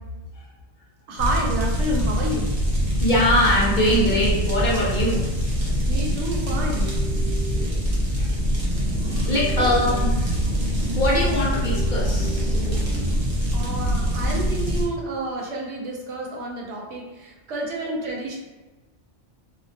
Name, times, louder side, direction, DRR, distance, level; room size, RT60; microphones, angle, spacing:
voice 1, 1.1-2.5 5.9-6.9 9.5-9.7 13.5-18.4, right 1 dB, 85° right, -1 dB, 0.9 m, -29 dB
sound 1, 1.2-14.8, equal, 55° right, 0.9 m, -24 dB
voice 2, 3.0-5.3 5.6-5.8 8.2-8.3 9.0-10.5 10.9-12.6, left 1 dB, 55° left, -5 dB, 0.6 m, -23 dB
sound 2, 6.7-13.1, right 2 dB, ahead, 0.6 m, -39 dB
2.3 x 2.1 x 2.6 m, 1.2 s
omnidirectional pair, 1.2 m